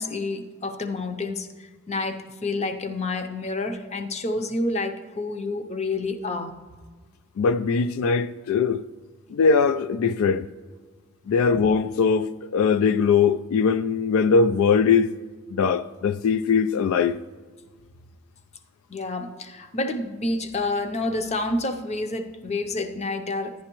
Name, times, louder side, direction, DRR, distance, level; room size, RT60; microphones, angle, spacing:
voice 1, 0.0-1.5 1.9-6.5 18.9-23.5, left 2 dB, 35° left, 0.6 m, -28 dB
voice 2, 7.4-8.8 9.3-10.4 11.3-15.1 15.5-17.2, left 5 dB, 90° left, 0.3 m, -21 dB
11.5 x 9.8 x 3.0 m
head